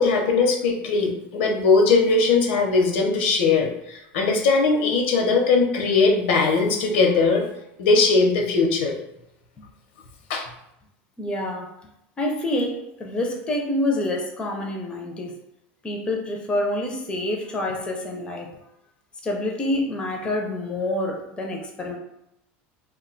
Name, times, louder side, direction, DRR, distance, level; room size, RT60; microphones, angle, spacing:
voice 1, 0.0-7.4 7.8-8.9 10.3-10.4, left 4 dB, 90° left, 2 dB, 0.7 m, -20 dB
voice 2, 11.2-11.7 12.2-15.3 15.8-18.5 19.2-22.0, left 1 dB, 15° left, 1 dB, 0.4 m, -27 dB
2.3 x 2.2 x 3.8 m, 0.81 s
supercardioid pair, 150°, 6 cm